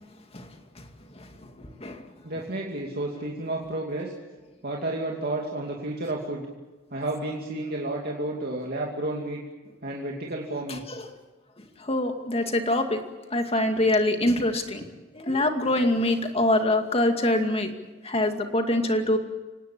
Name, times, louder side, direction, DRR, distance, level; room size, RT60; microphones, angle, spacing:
voice 1, 1.6-2.0 10.9-11.0 11.8-13.0 13.3-14.8 15.1-17.7 18.0-19.2, left 1 dB, 30° left, 5 dB, 2.3 m, -24 dB
voice 2, 2.2-4.1 4.6-6.5 6.9-9.4 9.8-10.8, right 2 dB, 55° right, -1 dB, 2.6 m, -31 dB
25.5 x 19.0 x 8.7 m, 1.2 s
head